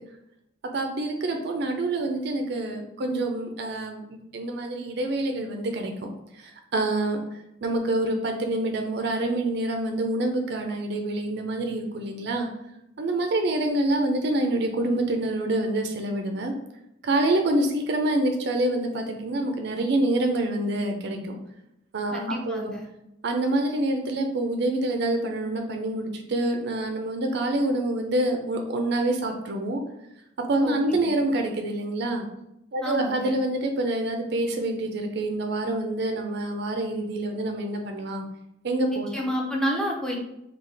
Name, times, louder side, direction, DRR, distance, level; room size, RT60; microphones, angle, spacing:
voice 1, 0.6-5.9 6.3-12.5 13.0-16.5 17.0-21.3 21.9-22.8 23.2-29.8 30.4-32.3 32.7-38.2 38.6-39.2, right 1 dB, 65° right, 4 dB, 0.4 m, -26 dB
voice 2, 22.1-22.9 30.6-31.2 32.8-33.4 39.1-40.2, equal, 5° left, -1 dB, 0.6 m, -29 dB
3.8 x 2.3 x 3.3 m, 0.86 s
head